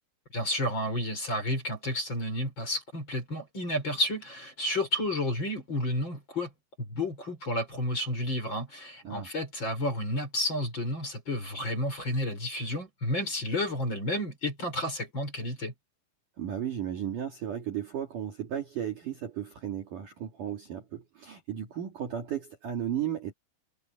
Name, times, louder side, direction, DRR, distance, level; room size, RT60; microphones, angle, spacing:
voice 1, 0.3-6.5 6.8-15.7, left 1 dB, 25° left, 6.0 m, -31 dB
voice 2, 16.4-23.3, right 9 dB, 50° right, 3.1 m, -35 dB
omnidirectional pair, 5.6 m